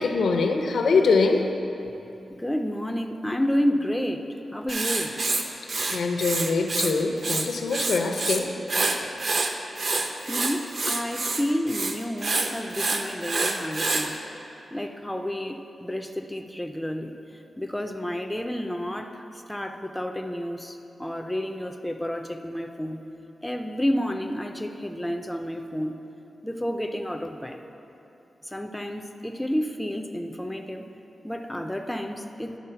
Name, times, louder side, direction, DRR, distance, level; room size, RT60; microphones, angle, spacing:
voice 1, 0.0-1.4 5.9-8.5, left 4 dB, 85° left, 4 dB, 0.7 m, -23 dB
voice 2, 2.3-4.2 4.5-5.1 10.3-14.2 14.7-17.1 17.6-23.0 23.4-25.9 26.4-27.6 28.4-30.9 31.2-32.5, equal, 5° left, 4 dB, 0.3 m, -30 dB
Writing, 4.7-6.9 7.2-8.4 8.7-14.1, right 3 dB, 45° right, 0.5 m, -27 dB
11.0 x 4.2 x 5.6 m, 2.9 s
wide cardioid pair, 160°, 0 cm